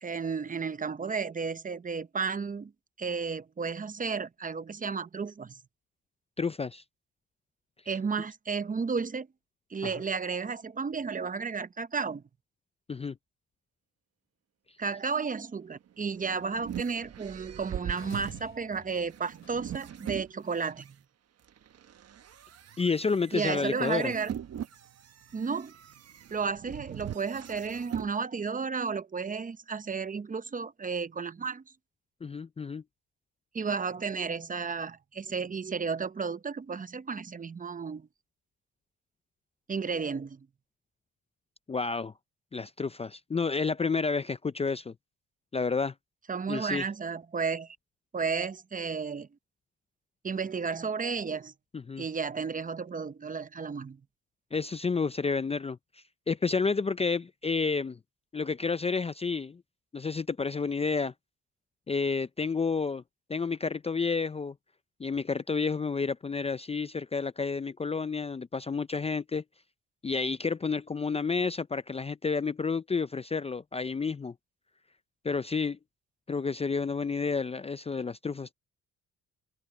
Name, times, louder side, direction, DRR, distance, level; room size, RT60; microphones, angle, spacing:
voice 1, 0.0-2.7 3.0-5.6 7.9-9.3 9.7-12.2 14.8-21.0 23.3-24.3 25.3-25.7 26.3-31.6 33.5-38.1 39.7-40.5 46.3-47.8 48.1-49.3 50.2-51.5 52.0-54.0, right 5 dB, 25° right, 0.8 m, -33 dB
voice 2, 6.4-6.8 9.8-10.0 12.9-13.2 22.8-24.1 32.2-32.8 41.7-42.1 42.5-44.9 45.5-45.9 46.5-46.8 51.7-52.0 54.5-55.8 56.3-58.0 58.3-59.6 59.9-61.1 61.9-63.0 63.3-64.5 65.0-69.4 70.0-74.3 75.2-75.8 76.3-78.5, left 4 dB, 20° left, 0.5 m, -30 dB
sound 1, 15.9-20.9 21.5-28.1, right 9 dB, 55° right, 1.2 m, -41 dB
sound 2, 17.9-20.2, left 6 dB, 40° left, 3.7 m, -52 dB
cardioid pair, 90°, 30 cm